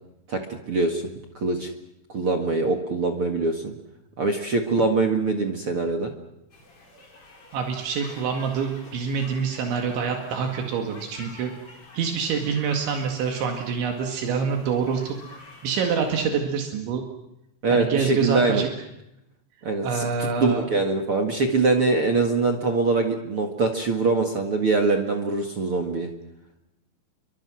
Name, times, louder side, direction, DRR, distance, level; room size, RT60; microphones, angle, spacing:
voice 1, 0.3-1.0 1.3-1.7 2.1-3.7 4.2-6.1 17.6-18.6 19.6-26.1, right 3 dB, 50° right, 4 dB, 1.7 m, -23 dB
sound 1, 6.5-16.2, left 2 dB, 30° left, 5.3 m, -48 dB
voice 2, 7.5-11.5 11.9-15.2 15.6-17.0 17.7-18.7 19.8-20.7, right 6 dB, 75° right, 3 dB, 4.4 m, -26 dB
29.5 x 24.0 x 6.3 m, 0.87 s
omnidirectional pair, 5.3 m